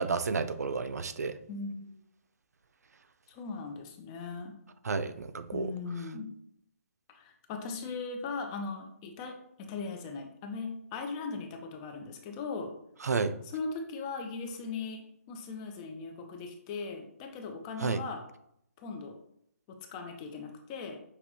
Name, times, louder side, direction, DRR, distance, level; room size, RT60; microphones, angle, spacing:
voice 1, 0.0-1.4 4.8-5.7 13.0-13.3 17.8-18.0, right 4 dB, 80° right, 11 dB, 0.4 m, -31 dB
voice 2, 1.5-1.8 3.3-4.6 5.5-6.3 7.1-12.7 13.4-18.2 18.8-19.2 19.7-21.0, left 4 dB, 20° left, 3 dB, 0.5 m, -39 dB
6.0 x 2.8 x 2.8 m, 0.73 s
hypercardioid pair, 155°, 8 cm